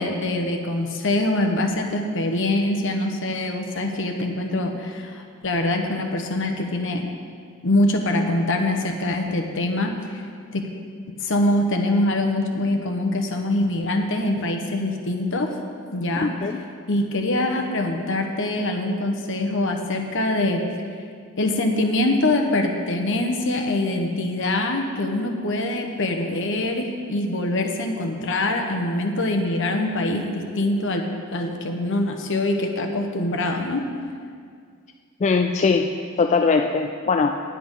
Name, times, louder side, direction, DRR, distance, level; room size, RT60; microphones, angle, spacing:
voice 1, 0.0-7.1 7.6-9.9 10.5-10.7 11.2-15.5 15.9-16.3 16.9-20.6 21.4-31.1 31.3-33.8, left 1 dB, 60° left, 4 dB, 1.1 m, -24 dB
voice 2, 16.2-16.6 35.2-35.9 36.2-37.3, left 4 dB, 30° left, 4 dB, 0.3 m, -21 dB
10.0 x 8.6 x 5.5 m, 2.1 s
head